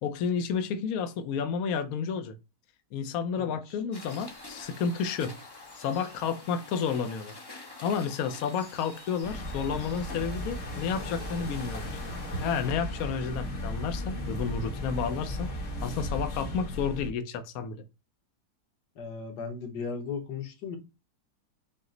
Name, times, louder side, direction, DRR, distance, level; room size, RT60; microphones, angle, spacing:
voice 1, 0.0-2.4 2.9-5.4 5.7-7.4 7.8-12.0 12.4-17.8, left 6 dB, 70° left, 1.0 m, -31 dB
voice 2, 3.3-3.8 19.0-20.8, left 5 dB, 90° left, 1.6 m, -37 dB
sound 1, 3.9-12.7, left 2 dB, 20° left, 0.6 m, -47 dB
sound 2, 9.2-17.1, left 1 dB, 50° left, 1.4 m, -35 dB
5.8 x 2.0 x 3.7 m
omnidirectional pair, 1.7 m